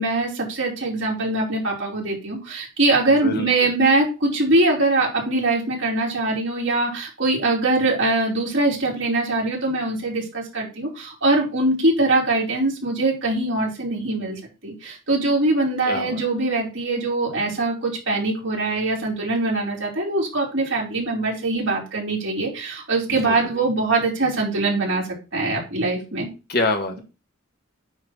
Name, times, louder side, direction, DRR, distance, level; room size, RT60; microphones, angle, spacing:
voice 1, 0.0-25.0 25.3-26.3, right 2 dB, 65° right, -3 dB, 3.9 m, -22 dB
voice 2, 3.0-3.5 15.9-16.2 23.1-23.3 26.5-27.0, left 2 dB, 50° left, 3 dB, 1.7 m, -25 dB
9.6 x 3.2 x 5.9 m, 0.31 s
head